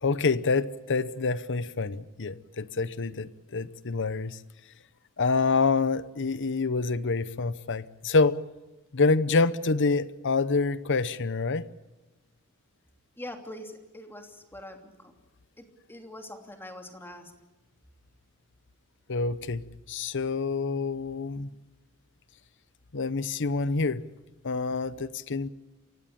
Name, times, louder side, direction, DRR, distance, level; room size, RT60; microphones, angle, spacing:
voice 1, 0.0-4.4 5.2-8.4 8.9-11.7 19.1-21.5 22.9-24.0 24.4-25.5, left 4 dB, 55° left, 16 dB, 0.8 m, -27 dB
voice 2, 13.2-14.9 15.6-17.3, left 1 dB, 10° left, 4 dB, 2.9 m, -43 dB
28.0 x 16.5 x 8.6 m, 1.1 s
head